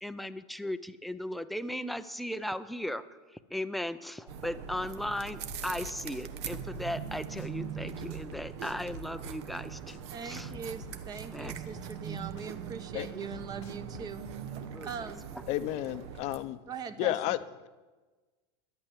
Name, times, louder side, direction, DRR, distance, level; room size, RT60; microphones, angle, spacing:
voice 1, 0.0-3.0 3.5-10.5 11.3-11.5 12.1-12.2 14.7-14.9, left 1 dB, ahead, 0.5 m, -37 dB
sound 1, 4.3-16.4, right 8 dB, 65° right, 1.1 m, -41 dB
sound 2, 5.5-7.1 7.4-9.6 9.9-12.1 12.4-14.6 14.9-15.5, left 8 dB, 80° left, 1.2 m, -50 dB
voice 2, 10.1-14.2 14.8-15.2 16.7-17.3, right 6 dB, 25° right, 0.9 m, -41 dB
voice 3, 15.5-16.6 17.0-17.4, left 15 dB, 45° left, 0.7 m, -31 dB
11.0 x 8.8 x 10.0 m
supercardioid pair, 140°, 15 cm